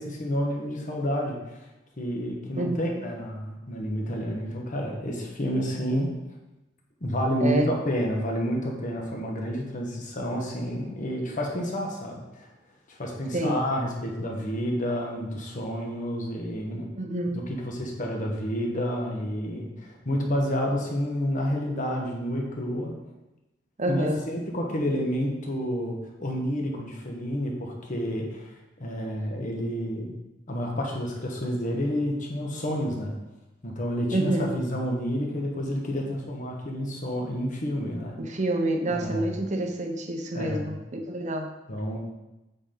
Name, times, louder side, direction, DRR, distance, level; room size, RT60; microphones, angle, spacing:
voice 1, 0.0-1.6 2.0-6.1 7.0-12.5 12.9-16.9 17.6-22.9 23.9-28.5 28.8-30.1 30.5-33.2 33.6-38.4 38.9-39.4 40.3-40.8 41.7-42.0, equal, 45° left, 0 dB, 1.3 m, -29 dB
voice 2, 2.6-3.0 7.4-7.7 13.3-13.6 17.0-17.4 23.8-24.3 34.1-34.5 38.2-41.5, right 1 dB, 40° right, 4 dB, 0.8 m, -28 dB
8.3 x 4.4 x 3.8 m, 1.0 s
head